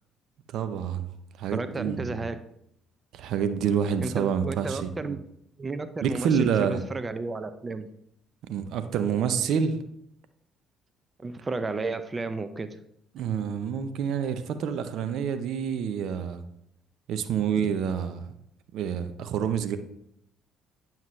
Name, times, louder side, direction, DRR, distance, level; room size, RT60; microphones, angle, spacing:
voice 1, 0.5-1.1 1.4-2.2 3.1-5.2 6.0-6.8 8.4-9.8 13.1-16.4 17.1-18.3 18.7-19.8, right 7 dB, 65° right, 10 dB, 0.6 m, -28 dB
voice 2, 1.5-2.4 4.0-5.2 5.6-7.9 11.2-12.8, right 3 dB, 30° right, 10 dB, 0.7 m, -33 dB
9.3 x 7.3 x 3.2 m, 0.75 s
hypercardioid pair, 55°, 0 cm